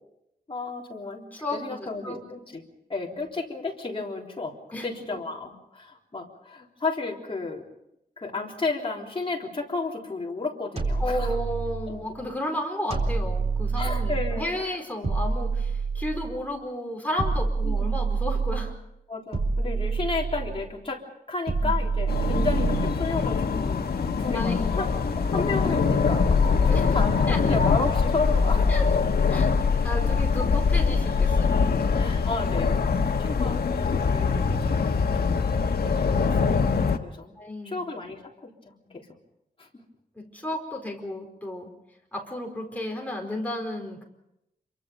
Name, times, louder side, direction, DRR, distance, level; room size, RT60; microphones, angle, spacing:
voice 1, 0.5-1.3 1.5-2.6 2.9-4.5 4.8-7.6 8.2-11.4 13.8-14.8 17.6-18.0 19.1-21.0 21.3-24.9 25.2-26.4 26.6-28.7 32.0-35.4 35.8-36.6 37.0-37.4 37.7-39.1 39.6-39.8, left 3 dB, 35° left, -1 dB, 3.6 m, -33 dB
voice 2, 1.3-2.2 3.1-3.2 4.7-5.2 11.0-18.7 21.6-21.9 23.5-23.7 24.3-24.9 26.6-26.9 27.3-27.6 28.7-28.9 29.3-29.6 29.8-31.6 35.0-35.3 37.4-37.9 38.8-39.0 40.1-41.7 42.1-44.1, left 1 dB, 10° left, 1 dB, 4.6 m, -33 dB
sound 1, 10.8-12.1 12.9-14.5 15.0-16.5 17.2-18.8 19.3-20.7 21.5-23.1, right 4 dB, 40° right, 3.9 m, -27 dB
sound 2, 22.1-37.0, left 5 dB, 80° left, 1.4 m, -23 dB
27.5 x 23.5 x 5.4 m, 0.84 s
wide cardioid pair, 160°, 16 cm